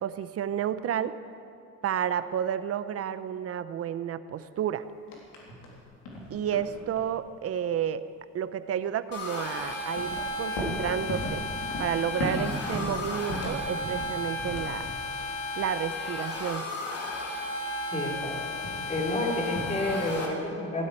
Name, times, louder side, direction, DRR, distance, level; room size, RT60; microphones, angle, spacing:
voice 1, 0.0-1.1 1.8-4.8 6.3-8.0 8.3-11.4 11.8-14.9 15.6-16.7, right 9 dB, 55° right, 13 dB, 0.8 m, -31 dB
sound 1, 5.1-5.8 6.1-7.2 9.8-15.2 18.6-19.0 19.5-19.9, left 1 dB, 90° left, 3.6 m, -36 dB
sound 2, 9.1-20.3, left 2 dB, 60° left, 2.9 m, -34 dB
voice 2, 17.9-18.4 18.9-20.9, left 1 dB, 25° left, 0 dB, 3.3 m, -30 dB
16.0 x 8.5 x 9.8 m, 2.4 s
cardioid pair, 120°, 29 cm